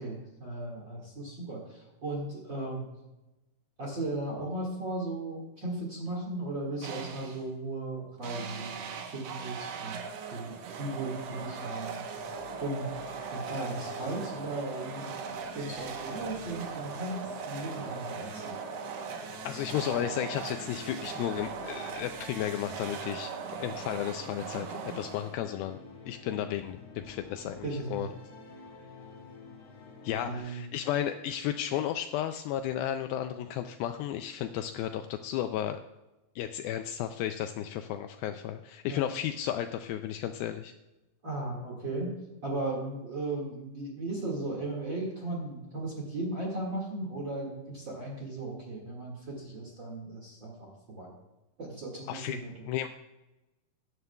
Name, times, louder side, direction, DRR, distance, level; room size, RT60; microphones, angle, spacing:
voice 1, 0.0-2.9 3.8-8.8 9.1-12.0 12.6-15.2 15.5-18.5 27.6-28.1 30.2-30.7 38.9-39.0 41.2-51.1 51.6-52.7, right 2 dB, 45° right, -2 dB, 1.6 m, -36 dB
sound 1, 6.8-7.5 8.2-25.6, right 6 dB, 75° right, 2.9 m, -39 dB
sound 2, 12.1-30.4, left 3 dB, 45° left, 3.9 m, -50 dB
voice 2, 19.4-23.3 23.6-25.8 26.1-28.1 30.0-35.8 36.4-40.7 52.1-52.4 52.7-52.9, left 11 dB, 90° left, 7 dB, 2.1 m, -33 dB
16.0 x 11.0 x 2.3 m, 1.0 s
omnidirectional pair, 4.7 m